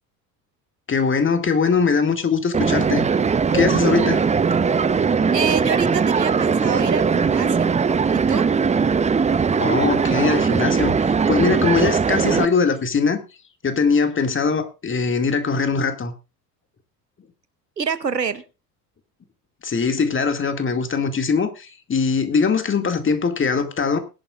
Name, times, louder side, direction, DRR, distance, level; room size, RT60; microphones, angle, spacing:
voice 1, 0.9-3.1 3.5-4.2 9.6-13.2 13.6-16.1 19.6-24.0, left 5 dB, 25° left, 2.2 m, -21 dB
sound 1, 2.5-12.4, right 5 dB, 15° right, 0.7 m, -20 dB
voice 2, 5.3-7.8 8.1-8.4 17.8-18.4, right 6 dB, 90° right, 1.0 m, -26 dB
20.5 x 11.0 x 2.4 m
figure-of-eight pair, 60°, 48 cm